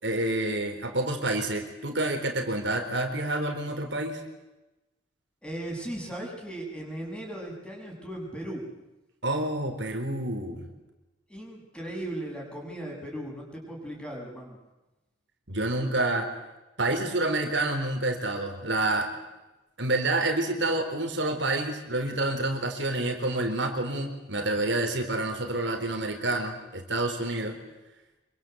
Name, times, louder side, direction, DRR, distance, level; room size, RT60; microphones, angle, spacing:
voice 1, 0.0-4.2 9.2-10.6 15.5-16.3 16.8-19.1 19.8-27.6, right 2 dB, 65° right, 4 dB, 4.1 m, -28 dB
voice 2, 5.4-8.6 11.3-14.6, right 1 dB, 5° left, -1 dB, 7.3 m, -37 dB
26.5 x 24.5 x 8.0 m, 1.0 s
head